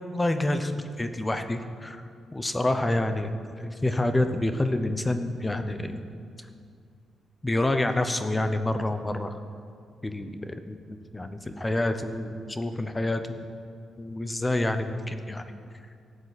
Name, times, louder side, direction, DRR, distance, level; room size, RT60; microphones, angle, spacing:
voice 1, 0.1-2.0 2.3-6.1 7.4-9.3 10.0-13.4 14.0-15.4, left 1 dB, 15° left, 8 dB, 0.7 m, -28 dB
17.0 x 7.8 x 4.1 m, 2.3 s
cardioid pair, 145°, 0 cm